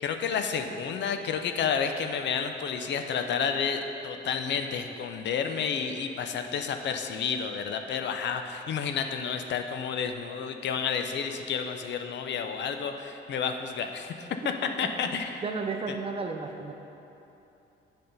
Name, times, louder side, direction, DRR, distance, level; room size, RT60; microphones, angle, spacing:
voice 1, 0.0-14.3 14.8-15.4 15.9-16.0, left 6 dB, 65° left, 6 dB, 0.5 m, -30 dB
voice 2, 15.4-16.7, right 4 dB, 30° right, 4 dB, 0.6 m, -33 dB
7.8 x 3.6 x 5.4 m, 2.9 s
cardioid pair, 90°, 20 cm